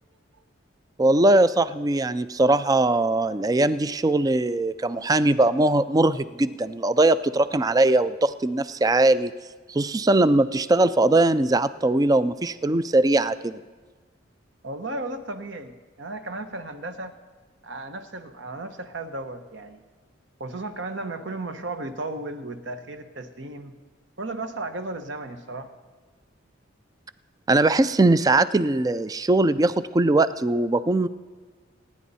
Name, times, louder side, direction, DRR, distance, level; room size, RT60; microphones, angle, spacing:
voice 1, 1.0-9.3 9.7-13.6 27.5-31.1, right 2 dB, 20° right, 15 dB, 0.3 m, -21 dB
voice 2, 14.6-17.2 17.6-19.8 20.4-23.7 24.2-25.7, right 2 dB, 65° right, 8 dB, 1.1 m, -35 dB
26.0 x 10.0 x 4.2 m, 1.4 s
head